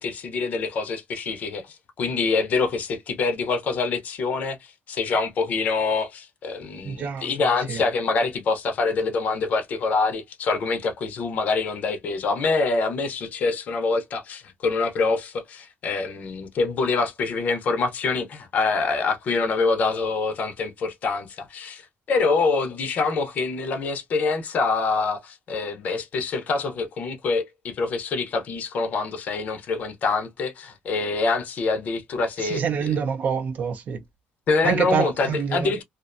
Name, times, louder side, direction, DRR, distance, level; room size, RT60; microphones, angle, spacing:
voice 1, 0.0-32.9 34.5-35.8, left 4 dB, 40° left, 0.6 m, -25 dB
voice 2, 6.8-7.8 32.4-34.0 34.6-35.7, right 7 dB, 40° right, 0.5 m, -26 dB
2.5 x 2.1 x 2.5 m
cardioid pair, 170°, 4 cm